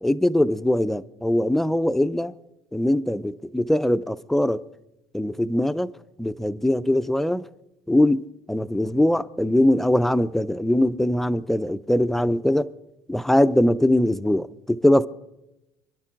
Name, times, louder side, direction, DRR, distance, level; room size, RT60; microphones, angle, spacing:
voice 1, 0.0-2.3 2.7-4.6 5.1-5.9 6.2-7.5 7.9-12.7 13.1-15.1, left 1 dB, 5° left, 0.5 m, -21 dB
25.5 x 11.5 x 3.7 m
supercardioid pair, 110°, 8 cm